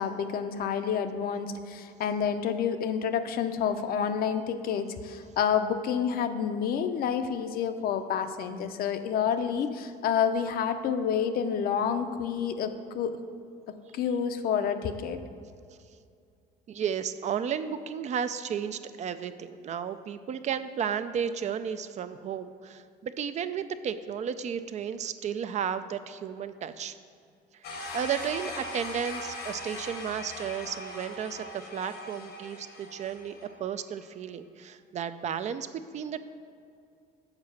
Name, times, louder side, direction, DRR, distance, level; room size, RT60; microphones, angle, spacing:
voice 1, 0.0-13.2 13.9-15.2, left 7 dB, 65° left, 9 dB, 0.6 m, -29 dB
voice 2, 16.7-27.0 27.9-36.3, right 8 dB, 45° right, 11 dB, 0.4 m, -33 dB
sound 1, 27.6-33.5, left 2 dB, 90° left, 1.3 m, -40 dB
7.3 x 4.7 x 6.3 m, 2.4 s
cardioid pair, 110°, 17 cm